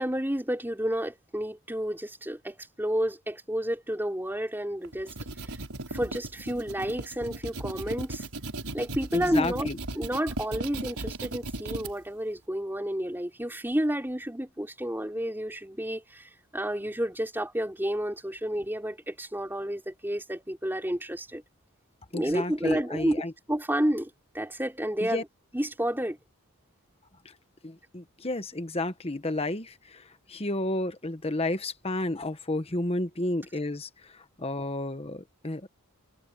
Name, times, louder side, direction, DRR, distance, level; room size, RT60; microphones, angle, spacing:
voice 1, 0.0-5.1 5.5-5.6 5.9-8.3 8.7-9.7 10.0-21.4 22.1-24.1 24.3-25.2 25.5-26.2, equal, 10° right, 3.6 m, -30 dB
sound 1, 4.8-11.9, right 2 dB, 75° right, 5.9 m, -37 dB
voice 2, 9.1-9.8 22.1-23.3 25.0-25.2 27.2-27.3 27.6-35.7, left 2 dB, 25° left, 1.3 m, -32 dB
head